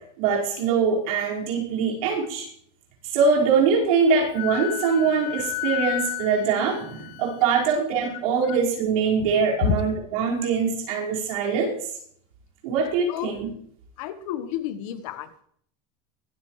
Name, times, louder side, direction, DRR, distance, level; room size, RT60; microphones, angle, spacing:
voice 1, 0.2-2.5 3.0-11.9 12.6-13.5, right 5 dB, 85° right, -3 dB, 5.0 m, -23 dB
Wind instrument woodwind instrument, 4.3-7.8, left 27 dB, 55° left, 1.0 m, -32 dB
voice 2, 14.0-15.4, left 11 dB, 75° left, 11 dB, 1.4 m, -29 dB
22.5 x 8.8 x 3.2 m, 0.64 s
supercardioid pair, 140°, 18 cm